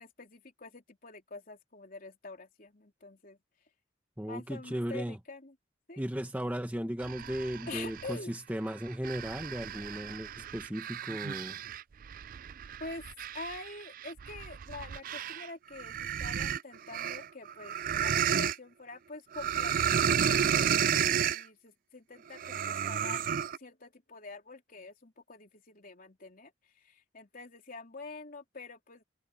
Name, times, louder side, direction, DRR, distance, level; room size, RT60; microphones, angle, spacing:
voice 1, 0.0-3.4 4.3-5.6 5.9-6.1 7.7-8.3 12.8-13.0 13.3-29.0, left 3 dB, 45° left, 3.6 m, -46 dB
voice 2, 4.2-5.2 6.0-11.6, equal, 10° right, 1.1 m, -36 dB
sound 1, 7.0-8.2 8.7-15.5 15.8-18.6 19.3-21.4 22.3-23.6, right 8 dB, 45° right, 0.4 m, -32 dB
head